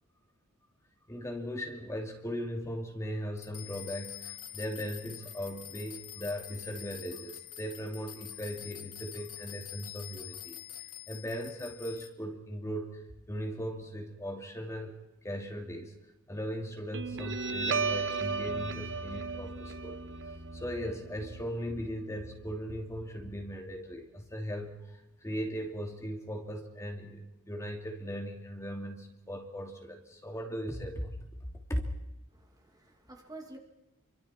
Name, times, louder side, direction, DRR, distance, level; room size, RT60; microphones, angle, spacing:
voice 1, 1.1-10.6 11.1-13.0 13.3-15.9 16.3-20.0 20.5-31.1 31.7-31.9, equal, 15° left, 1 dB, 2.8 m, -38 dB
sound 1, 3.4-12.1, left 12 dB, 85° left, 2.3 m, -46 dB
Guitar, 16.9-23.9, right 4 dB, 55° right, 1.3 m, -36 dB
voice 2, 32.3-33.6, right 2 dB, 15° right, 2 dB, 2.5 m, -49 dB
29.0 x 24.5 x 4.5 m, 0.95 s
head